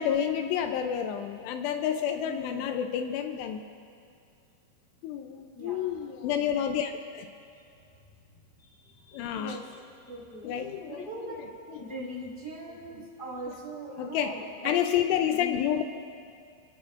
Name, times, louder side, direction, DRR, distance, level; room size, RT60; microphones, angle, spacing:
voice 1, 0.0-3.6 5.0-7.3 9.1-9.6 10.4-11.9 13.0-13.1 14.0-14.4 14.6-15.8, left 9 dB, 80° left, 6 dB, 2.5 m, -30 dB
voice 2, 2.2-2.6 5.5-5.8 6.6-6.7 8.8-9.8 10.1-10.5 10.8-11.4 11.8-14.7 15.3-15.6, right 1 dB, 10° left, -5 dB, 3.2 m, -40 dB
29.0 x 16.5 x 2.5 m, 2.3 s
omnidirectional pair, 5.4 m